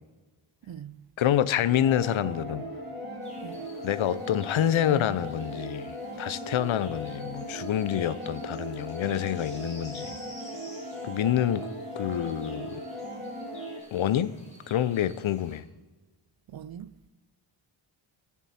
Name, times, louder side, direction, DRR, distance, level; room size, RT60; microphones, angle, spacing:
voice 1, 0.7-1.0 3.4-3.7 16.5-16.9, right 9 dB, 50° right, 0.5 m, -42 dB
voice 2, 1.2-2.7 3.8-10.1 11.0-11.7 12.0-12.8 13.9-14.3 14.7-15.6, left 11 dB, 75° left, 0.6 m, -27 dB
sound 1, 1.7-13.8, equal, 20° right, 2.9 m, -38 dB
sound 2, 3.2-15.6, equal, 15° left, 3.3 m, -52 dB
20.5 x 7.3 x 4.3 m
wide cardioid pair, 170°, 48 cm